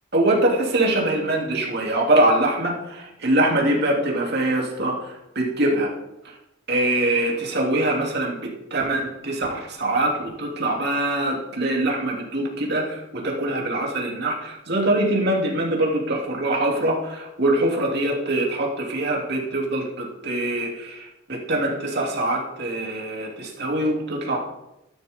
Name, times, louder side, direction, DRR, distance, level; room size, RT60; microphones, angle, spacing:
voice 1, 0.1-5.9 6.2-6.3 6.7-24.4, right 1 dB, 50° right, -2 dB, 3.0 m, -23 dB
14.5 x 12.0 x 3.7 m, 0.90 s
head